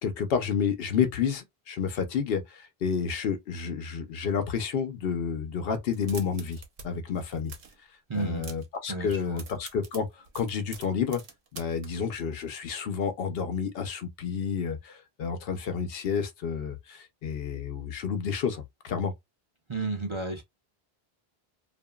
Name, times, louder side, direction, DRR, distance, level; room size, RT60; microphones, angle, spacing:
voice 1, 0.0-7.5 8.1-11.2 11.5-19.1, left 6 dB, 75° left, 0.8 m, -30 dB
sound 1, 5.9-6.9 7.1-7.8 8.1-8.8 9.0-11.9, right 5 dB, 75° right, 1.0 m, -46 dB
voice 2, 8.1-8.5 8.9-9.4 19.7-20.4, right 3 dB, 35° right, 0.5 m, -32 dB
2.8 x 2.5 x 2.2 m
omnidirectional pair, 1.0 m